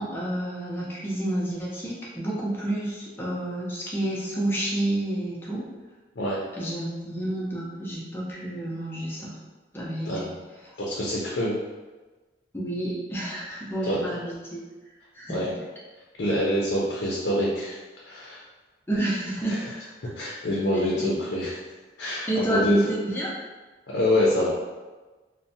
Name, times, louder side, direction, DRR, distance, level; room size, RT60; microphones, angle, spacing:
voice 1, 0.0-5.6 6.5-9.4 9.7-10.3 12.5-14.6 15.1-15.4 18.9-19.7 21.0-21.1 22.3-23.4, right 1 dB, 15° left, -6 dB, 0.5 m, -29 dB
voice 2, 10.8-11.6 13.9-14.0 15.3-15.5 16.2-17.8 18.1-18.4 19.5-19.6 20.1-21.6 22.0-22.8 23.9-24.5, left 1 dB, 75° left, -5 dB, 0.5 m, -25 dB
2.6 x 2.1 x 2.6 m, 1.2 s
head